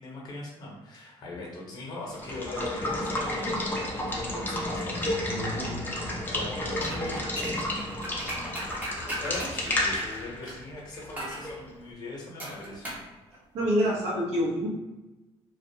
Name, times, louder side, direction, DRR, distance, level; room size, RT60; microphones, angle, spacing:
voice 1, 0.0-5.9 6.3-8.4 9.0-13.1, left 2 dB, 40° left, -3 dB, 0.8 m, -41 dB
Water / Water tap faucet / Liquid, 2.1-11.7, left 1 dB, 15° left, 0.5 m, -31 dB
voice 2, 5.3-5.8 13.5-14.7, equal, 80° right, -3 dB, 0.7 m, -27 dB
sound 1, 6.8-10.6 11.2-11.5 12.4-13.1 13.3-13.4, right 1 dB, 15° right, 0.8 m, -37 dB
2.3 x 2.2 x 2.7 m, 1.1 s
cardioid pair, 140°, 11 cm